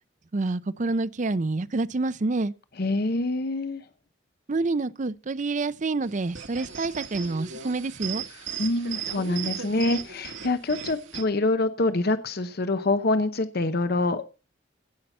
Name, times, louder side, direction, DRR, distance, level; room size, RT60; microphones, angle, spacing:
voice 1, 0.3-2.5 4.5-8.2, right 3 dB, 40° right, 0.5 m, -27 dB
voice 2, 2.8-3.8 8.6-14.2, left 2 dB, 55° left, 0.7 m, -25 dB
sound 1, 6.0-11.2, right 7 dB, 80° right, 1.7 m, -37 dB
16.0 x 5.7 x 5.4 m
head